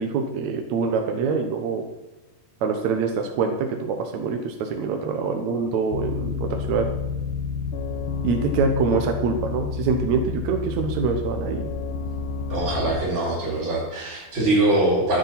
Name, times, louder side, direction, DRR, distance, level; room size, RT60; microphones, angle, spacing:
voice 1, 0.0-1.8 2.6-6.9 8.2-11.7, right 5 dB, 65° right, 3 dB, 1.9 m, -25 dB
sound 1, 5.9-13.0, left 5 dB, 75° left, 2.5 m, -29 dB
voice 2, 12.5-15.2, right 1 dB, 30° right, -6 dB, 5.1 m, -23 dB
13.5 x 9.6 x 5.7 m, 1.1 s
omnidirectional pair, 4.3 m